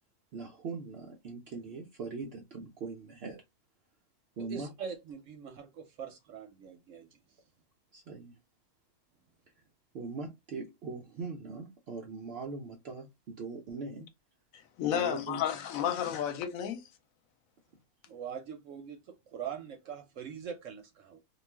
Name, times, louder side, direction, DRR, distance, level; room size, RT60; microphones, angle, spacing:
voice 1, 0.3-3.4 4.4-4.7 7.9-8.4 9.9-14.1 14.9-15.4, right 4 dB, 85° right, 0.5 m, -41 dB
voice 2, 4.4-7.4 18.1-21.2, right 7 dB, 65° right, 0.8 m, -43 dB
voice 3, 14.8-16.8, left 9 dB, 70° left, 0.9 m, -31 dB
2.3 x 2.3 x 3.2 m
omnidirectional pair, 1.7 m